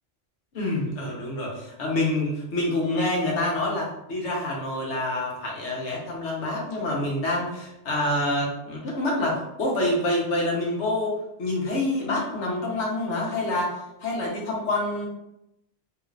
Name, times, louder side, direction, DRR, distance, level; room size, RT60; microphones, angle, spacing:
voice 1, 0.5-11.1 11.4-13.7 14.0-15.1, left 1 dB, 75° left, -3 dB, 1.2 m, -27 dB
3.6 x 2.4 x 3.2 m, 0.86 s
omnidirectional pair, 1.2 m